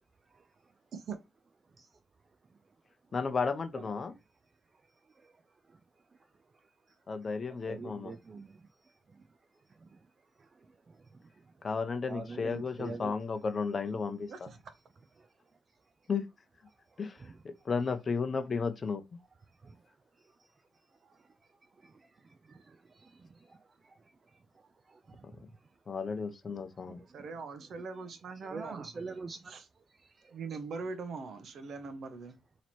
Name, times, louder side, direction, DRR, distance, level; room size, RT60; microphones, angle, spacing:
voice 1, 3.1-4.1 7.1-8.1 11.6-14.5 16.1-16.2 17.0-17.2 17.4-19.0 25.2-25.3 25.9-27.0, left 5 dB, 40° left, 0.6 m, -33 dB
voice 2, 7.5-8.5 9.8-9.9 12.1-13.2 17.1-17.3 19.6-19.7 21.8-21.9 22.5-23.6 23.8-24.0 24.9-25.4 26.8-29.5 30.0-30.6, right 4 dB, 35° right, 0.3 m, -46 dB
voice 3, 14.3-14.6 27.1-29.0 29.5-29.7 30.3-32.3, right 4 dB, 60° right, 0.8 m, -41 dB
3.0 x 2.8 x 4.2 m
cardioid pair, 90°, 0 cm